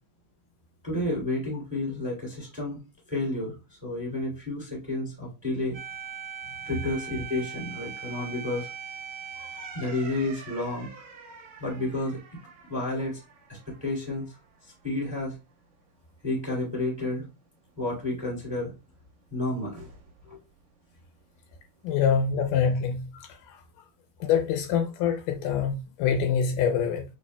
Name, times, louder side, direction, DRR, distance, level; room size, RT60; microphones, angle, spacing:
voice 1, 0.8-2.8 3.1-5.8 6.6-8.7 9.7-10.9 11.6-12.2 12.7-13.2 13.5-14.3 14.6-15.3 16.2-17.2 17.8-18.7 19.3-19.9 20.2-20.4 21.9-22.0, left 2 dB, 5° right, 1.6 m, -31 dB
sound 1, 5.7-14.4 14.7-14.8 19.7-20.3, right 7 dB, 65° right, 2.0 m, -42 dB
voice 2, 21.8-23.3 24.2-27.0, left 7 dB, 80° left, 2.1 m, -25 dB
6.6 x 3.3 x 2.2 m
omnidirectional pair, 3.9 m